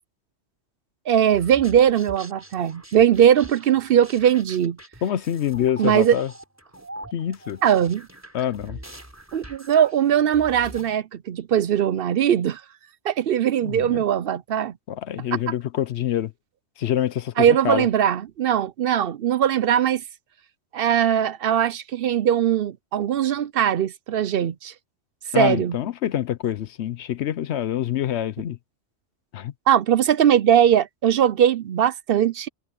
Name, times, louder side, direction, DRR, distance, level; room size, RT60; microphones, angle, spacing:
voice 1, 1.1-4.8 5.8-6.2 7.6-8.0 9.3-12.6 13.0-14.7 17.4-20.0 20.7-24.7 25.3-25.7 29.7-32.5, right 9 dB, 60° right, 0.7 m, -20 dB
sound 1, 1.3-10.9, right 1 dB, 15° right, 3.5 m, -43 dB
voice 2, 5.0-6.3 7.1-7.6 8.3-8.8 13.6-14.0 14.9-16.3 16.8-17.9 25.3-28.6 29.3-29.5, left 10 dB, 70° left, 0.9 m, -26 dB
omnidirectional pair, 1.2 m